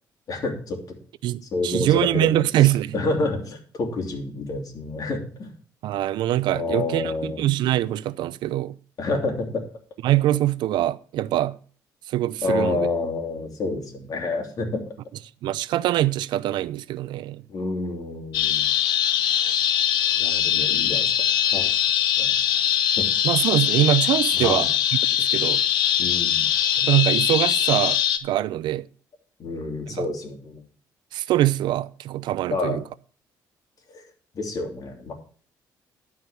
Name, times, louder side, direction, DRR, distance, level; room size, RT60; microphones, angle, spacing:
voice 1, 0.3-1.0 1.5-5.5 6.5-7.4 9.0-9.6 12.4-14.8 17.5-18.7 20.2-21.1 21.4-21.8 22.2-22.3 23.0-23.3 24.3-24.7 26.0-26.5 29.4-30.6 32.5-32.8 33.9-34.0 34.3-35.1, left 3 dB, 55° left, 3.0 m, -28 dB
voice 2, 1.2-3.0 5.8-8.7 10.0-11.6 12.1-12.9 15.4-17.4 23.2-24.7 25.2-25.6 26.8-28.9 29.9-30.1 31.1-32.8, right 14 dB, 80° right, 0.5 m, -23 dB
sound 1, 18.3-28.2, left 10 dB, 85° left, 0.8 m, -22 dB
12.0 x 4.8 x 6.7 m
cardioid pair, 85°, 8 cm